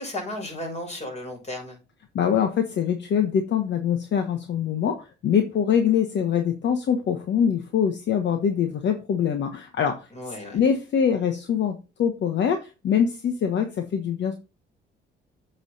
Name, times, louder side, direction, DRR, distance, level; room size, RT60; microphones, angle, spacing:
voice 1, 0.0-1.8 10.1-10.6, left 1 dB, 35° left, 1 dB, 5.6 m, -34 dB
voice 2, 2.1-14.4, left 8 dB, 65° left, 6 dB, 1.2 m, -24 dB
8.2 x 5.6 x 4.1 m, 0.29 s
cardioid pair, 90°, 20 cm